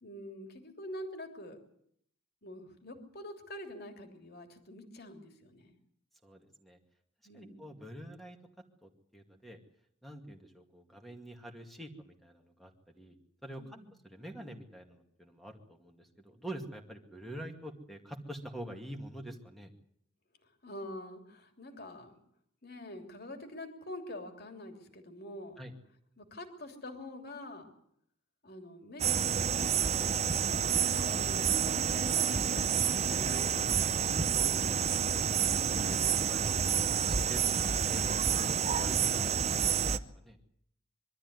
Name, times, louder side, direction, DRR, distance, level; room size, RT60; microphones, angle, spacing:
voice 1, 0.0-1.6 2.4-5.8 7.2-7.7 13.6-13.9 20.4-22.2 22.6-25.6 26.2-27.7 28.4-30.4 30.8-33.6 34.3-35.1, left 1 dB, 50° left, 5 dB, 3.1 m, -46 dB
voice 2, 6.2-6.8 7.3-8.4 8.8-9.6 10.0-12.7 13.0-13.2 13.4-13.8 14.0-19.7 25.6-25.7 34.1-36.7 36.9-39.6 39.9-40.4, right 1 dB, ahead, 3 dB, 2.3 m, -46 dB
sound 1, 29.0-40.0, right 7 dB, 35° right, 0.8 m, -29 dB
23.5 x 13.5 x 9.6 m, 0.70 s
head